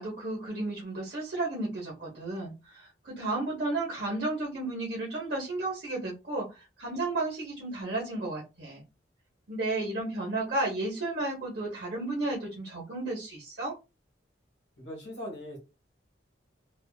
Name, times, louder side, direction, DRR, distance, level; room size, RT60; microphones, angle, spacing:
voice 1, 0.0-6.5 6.8-8.8 9.5-13.7, right 2 dB, 55° right, 0.9 m, -33 dB
voice 2, 14.8-15.6, left 1 dB, 65° left, 1.1 m, -40 dB
2.4 x 2.4 x 2.3 m
head